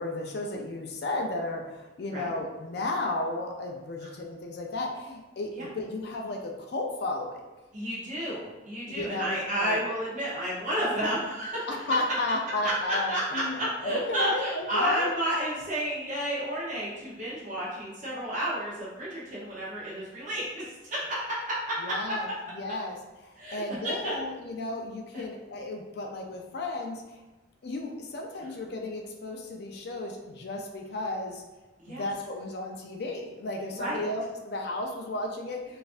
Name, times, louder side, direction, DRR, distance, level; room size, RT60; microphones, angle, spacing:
voice 1, 0.0-7.4 8.9-9.8 11.7-15.1 21.8-22.3 22.5-22.9 23.2-27.0 27.6-31.4 31.9-35.8, left 2 dB, 55° left, 2 dB, 0.4 m, -33 dB
voice 2, 7.7-11.9 12.6-22.1 23.4-24.1 25.1-25.2 31.8-32.1 33.7-34.0, right 1 dB, 40° right, -7 dB, 0.8 m, -31 dB
4.0 x 2.5 x 2.4 m, 1.1 s
head